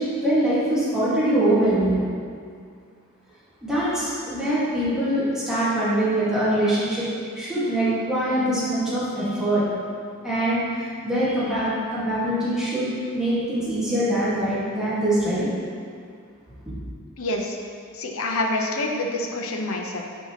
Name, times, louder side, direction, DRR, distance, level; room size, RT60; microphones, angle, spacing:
voice 1, 0.0-2.0 3.6-7.1 7.4-9.6 10.2-15.5 16.7-16.8, right 1 dB, 5° right, -11 dB, 1.9 m, -23 dB
voice 2, 17.2-17.6 17.9-20.0, left 2 dB, 80° left, 1 dB, 0.8 m, -27 dB
9.8 x 5.4 x 3.1 m, 2.2 s
head